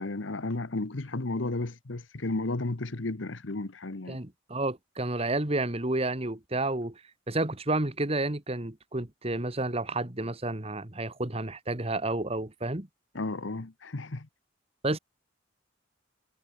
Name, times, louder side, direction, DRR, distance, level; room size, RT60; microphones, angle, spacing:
voice 1, 0.0-4.2 13.1-14.3, left 2 dB, 80° left, 1.2 m, -33 dB
voice 2, 4.1-6.9 7.3-12.9 14.8-15.0, right 2 dB, 30° right, 1.9 m, -30 dB
head